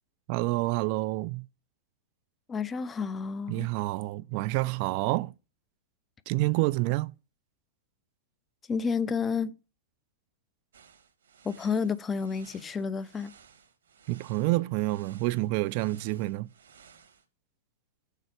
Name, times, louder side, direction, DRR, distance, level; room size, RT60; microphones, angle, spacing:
voice 1, 0.3-1.4 3.5-5.3 6.3-7.1 14.1-16.5, right 20 dB, 50° right, 0.4 m, -28 dB
voice 2, 2.5-3.7 8.7-9.6 11.4-13.3, left 5 dB, 20° left, 0.5 m, -30 dB
sound 1, 10.7-17.2, right 7 dB, 80° right, 1.5 m, -57 dB
6.5 x 4.1 x 5.1 m
hypercardioid pair, 115°, 0 cm